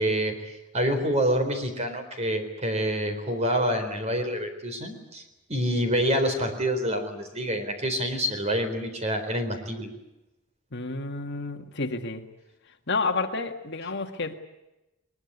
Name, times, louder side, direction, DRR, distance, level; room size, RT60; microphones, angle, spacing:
voice 1, 0.0-5.2 5.5-9.9, equal, 30° right, 7 dB, 4.1 m, -27 dB
voice 2, 10.7-12.2 12.9-14.3, left 3 dB, 50° left, 6 dB, 1.8 m, -30 dB
21.5 x 21.5 x 9.7 m, 0.96 s
head